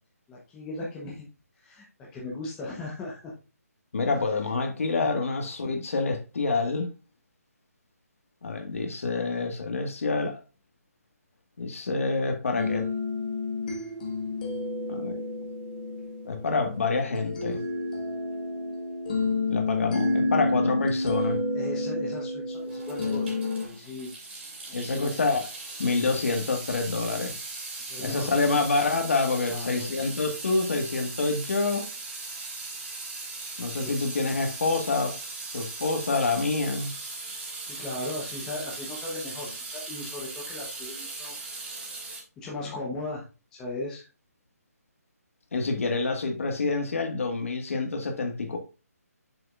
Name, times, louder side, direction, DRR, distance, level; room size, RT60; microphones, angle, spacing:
voice 1, 0.3-1.3 1.6-3.3 4.9-5.1 21.5-23.3 23.6-24.1 24.7-25.2 27.8-28.5 29.4-29.9 33.8-34.2 37.6-41.3 42.4-43.2 43.5-44.1, left 2 dB, 10° left, 0.9 m, -37 dB
voice 2, 3.9-6.9 8.4-10.4 11.6-12.9 14.9-15.2 16.2-17.6 19.5-21.4 24.7-25.4 25.8-27.3 28.0-31.9 33.6-35.2 35.5-36.9 45.5-48.6, left 3 dB, 55° left, 1.6 m, -27 dB
sound 1, 12.6-23.6, left 2 dB, 30° left, 1.5 m, -30 dB
Water tap faucet / Sink (filling or washing) / Drip, 22.6-42.2, right 3 dB, 45° right, 2.9 m, -39 dB
6.9 x 6.7 x 2.4 m
hypercardioid pair, 170°, 9 cm